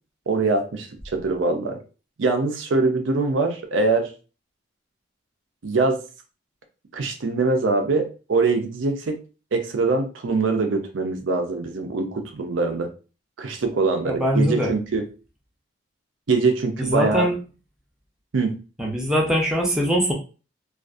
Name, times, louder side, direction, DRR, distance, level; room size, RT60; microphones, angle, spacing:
voice 1, 0.3-1.8 2.2-4.1 5.6-6.0 6.9-9.2 9.5-12.9 13.4-15.0 16.3-17.3 18.3-18.5, right 3 dB, 80° right, 5 dB, 0.5 m, -23 dB
voice 2, 14.0-14.7 16.8-17.3 18.8-20.1, equal, 5° right, -2 dB, 0.5 m, -22 dB
2.5 x 2.4 x 2.4 m, 0.34 s
head